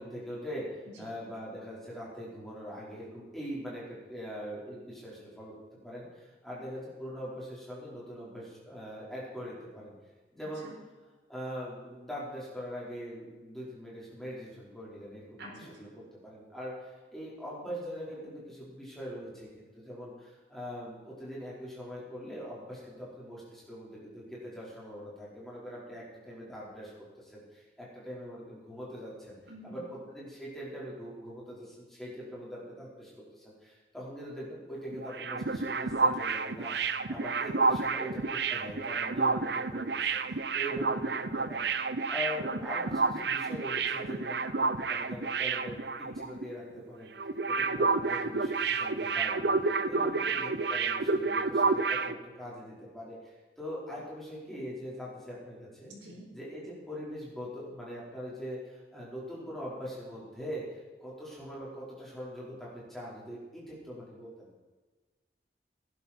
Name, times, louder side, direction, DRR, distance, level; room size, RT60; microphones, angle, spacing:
voice 1, 0.0-5.5 5.8-9.9 10.3-10.7 11.3-26.9 27.2-29.4 29.6-41.7 42.1-49.5 49.9-55.9 56.3-64.5, equal, ahead, -6 dB, 4.7 m, -42 dB
voice 2, 29.5-29.9 49.7-50.4 55.9-56.3, right 1 dB, 85° right, -1 dB, 4.6 m, -49 dB
sound 1, 34.9-46.5 46.7-46.9 47.2-52.1, right 4 dB, 70° right, 0.7 m, -30 dB
18.0 x 11.0 x 4.5 m, 1.3 s
head